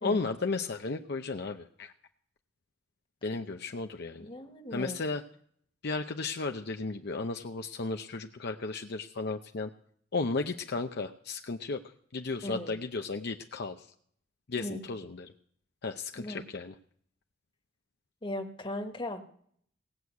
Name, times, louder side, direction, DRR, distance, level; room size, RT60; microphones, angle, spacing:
voice 1, 0.0-1.9 3.2-4.3 4.7-5.2 5.8-9.7 10.1-11.8 12.1-13.9 14.5-15.3 15.8-16.7, left 3 dB, 60° left, 5 dB, 0.7 m, -34 dB
voice 2, 4.2-5.0 12.4-12.7 14.6-14.8 16.2-16.4 18.2-19.2, left 1 dB, 25° left, 5 dB, 1.5 m, -37 dB
18.0 x 6.3 x 8.3 m, 0.62 s
head